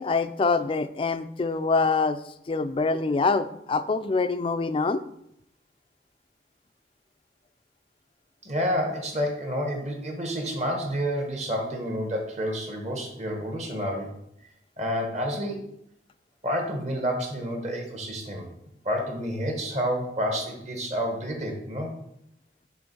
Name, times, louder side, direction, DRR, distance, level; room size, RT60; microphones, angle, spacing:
voice 1, 0.0-2.2 2.5-5.0, left 4 dB, 30° left, 12 dB, 0.3 m, -25 dB
voice 2, 8.4-14.1 14.8-15.6 16.4-18.5 18.8-21.9, equal, 40° right, 2 dB, 1.2 m, -29 dB
7.0 x 3.1 x 5.3 m, 0.77 s
head